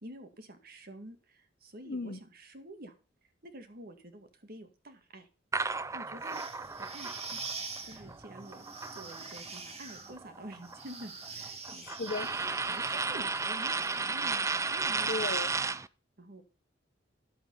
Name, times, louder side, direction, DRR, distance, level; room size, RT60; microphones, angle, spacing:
voice 1, 0.0-2.9 3.4-5.3 5.9-6.4 6.8-7.4 7.8-8.7 8.9-11.9 12.7-15.4 16.2-16.4, right 1 dB, 55° right, 2.0 m, -48 dB
voice 2, 1.9-2.2 11.7-12.6 15.1-15.5, left 3 dB, 55° left, 0.8 m, -37 dB
sound 1, 5.5-9.6 9.9-15.9, right 4 dB, 15° right, 0.4 m, -34 dB
sound 2, 6.2-14.5, right 4 dB, 35° right, 2.3 m, -45 dB
12.0 x 7.9 x 5.4 m
head